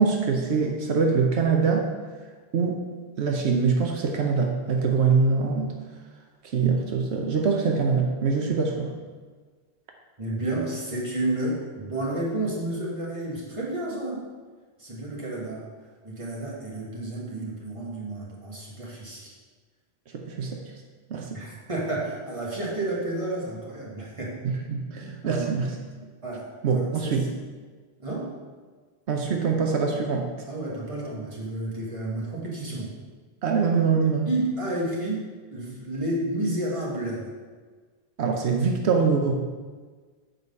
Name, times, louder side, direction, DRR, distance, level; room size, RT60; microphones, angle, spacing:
voice 1, 0.0-1.9 2.5-2.8 3.2-5.7 6.5-9.0 20.1-20.6 21.1-21.4 24.4-25.7 26.0-26.1 26.6-27.3 29.1-30.3 33.4-34.3 38.2-39.3, right 5 dB, 85° right, 2 dB, 1.1 m, -24 dB
voice 2, 10.2-14.3 14.8-15.6 16.0-19.3 21.3-24.4 25.2-25.5 26.2-27.3 28.0-28.3 30.5-32.9 34.3-37.3, right 1 dB, 30° right, -5 dB, 1.9 m, -31 dB
7.8 x 4.7 x 5.4 m, 1.5 s
omnidirectional pair, 1.1 m